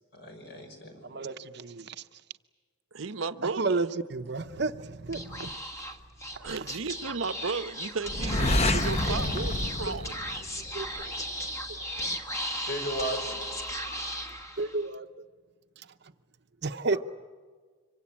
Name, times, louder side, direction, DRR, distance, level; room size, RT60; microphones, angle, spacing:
voice 1, 0.1-1.3 12.7-13.4 16.9-17.0, right 1 dB, 60° left, 6.0 m, -36 dB
voice 2, 1.0-2.0 3.6-5.6 6.6-6.7 8.4-8.5 8.7-9.5 9.9-10.0 10.7-11.2 11.7-12.0 14.6-15.1 16.6-17.0, right 3 dB, 55° right, 0.8 m, -32 dB
voice 3, 2.9-3.8 6.3-10.1, right 4 dB, 85° right, 0.9 m, -34 dB
Speech / Whispering, 5.1-14.9, equal, 15° left, 1.4 m, -36 dB
sound 1, 8.1-10.9, left 1 dB, 35° left, 0.9 m, -28 dB
25.5 x 24.0 x 8.6 m
head